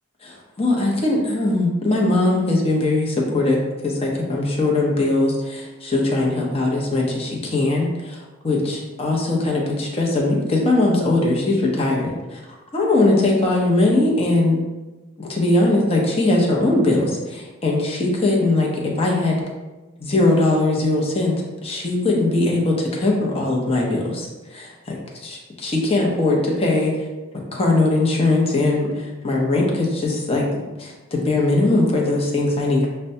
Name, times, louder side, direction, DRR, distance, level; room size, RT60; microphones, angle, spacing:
voice 1, 0.2-12.4 12.7-14.6 15.2-19.4 20.0-21.3 21.6-25.0 25.2-27.0 27.3-30.4 30.8-32.9, left 2 dB, 30° left, -2 dB, 0.7 m, -20 dB
6.5 x 2.2 x 2.7 m, 1.1 s
head